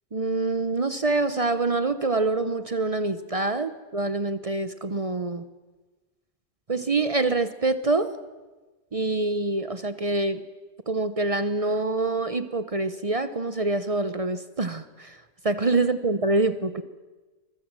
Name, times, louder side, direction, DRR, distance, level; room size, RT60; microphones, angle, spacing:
voice 1, 0.1-5.4 6.7-8.1 8.9-10.4 10.9-16.8, right 3 dB, 45° right, 11 dB, 0.4 m, -26 dB
25.5 x 21.0 x 7.5 m, 1.2 s
omnidirectional pair, 1.9 m